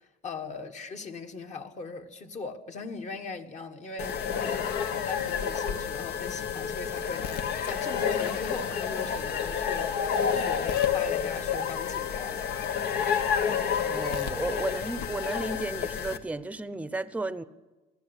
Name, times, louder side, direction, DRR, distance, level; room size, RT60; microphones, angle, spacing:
voice 1, 0.0-4.7 5.0-12.5, left 4 dB, 45° left, 1.6 m, -39 dB
sound 1, 4.0-16.2, left 7 dB, 75° left, 1.4 m, -29 dB
voice 2, 13.5-17.4, right 2 dB, 10° right, 0.8 m, -34 dB
21.5 x 14.5 x 8.3 m
cardioid pair, 110°, 17 cm